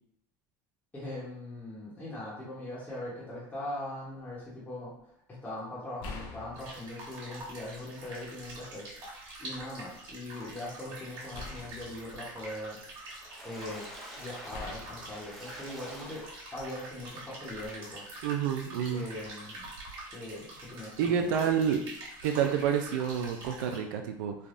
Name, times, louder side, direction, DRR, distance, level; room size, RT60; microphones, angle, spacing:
voice 1, 0.9-4.9 5.4-9.0 9.4-12.8 13.4-13.8 14.2-16.2 16.5-18.0 18.9-19.7 20.1-21.3, left 1 dB, 15° left, -8 dB, 0.9 m, -41 dB
sound 1, 4.2-4.4 6.0-7.8 8.3-9.3 11.3-13.3 14.5-16.4 17.5-17.7, left 3 dB, 60° left, 0.5 m, -47 dB
sound 2, 6.6-23.8, right 2 dB, 45° right, 1.4 m, -46 dB
Water / Splash splatter, 12.9-16.8 17.3-17.4 17.8-17.9, equal, ahead, 0.5 m, -48 dB
voice 2, 18.2-19.1 21.0-21.8 22.2-24.4, right 8 dB, 80° right, 5 dB, 0.4 m, -28 dB
3.3 x 2.2 x 2.5 m, 0.73 s
supercardioid pair, 125°, 11 cm